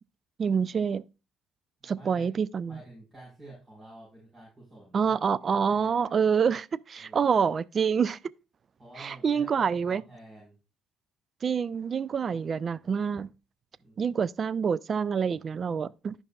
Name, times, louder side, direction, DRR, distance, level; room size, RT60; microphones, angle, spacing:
voice 1, 0.4-1.0 1.8-2.8 4.9-8.2 9.0-10.0 11.4-13.3 14.0-16.1, right 6 dB, 45° right, 0.4 m, -27 dB
voice 2, 1.8-2.3 2.7-5.1 5.5-6.1 7.0-7.3 8.8-10.5 13.8-14.2, right 2 dB, 25° right, 4.8 m, -50 dB
13.5 x 5.4 x 2.4 m
supercardioid pair, 75°, 0 cm